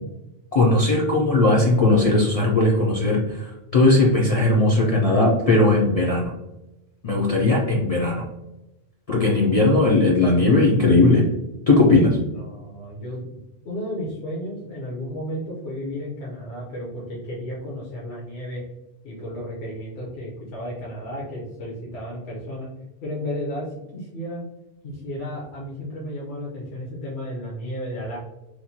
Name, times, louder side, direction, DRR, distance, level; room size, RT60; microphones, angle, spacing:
voice 1, 0.5-6.3 7.0-8.3 9.1-11.2 11.7-12.2, left 2 dB, 55° left, -3 dB, 0.4 m, -18 dB
voice 2, 12.3-13.3 13.6-18.6 19.0-22.7 23.0-23.7 23.9-24.4 24.8-28.2, equal, 80° left, -5 dB, 0.9 m, -33 dB
3.0 x 2.1 x 2.7 m, 0.94 s
omnidirectional pair, 1.1 m